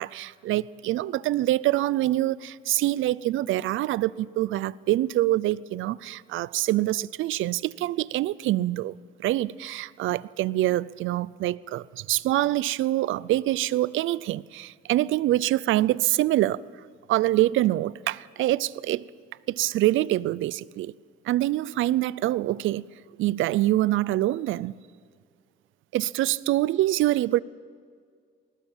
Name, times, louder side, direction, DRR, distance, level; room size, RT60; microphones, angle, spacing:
voice 1, 0.0-8.9 9.2-16.6 17.1-19.1 19.5-20.9 21.2-22.9 23.2-24.8 25.9-27.4, right 15 dB, 80° right, 0.5 m, -25 dB
20.5 x 19.0 x 7.4 m
cardioid pair, 90°, 20 cm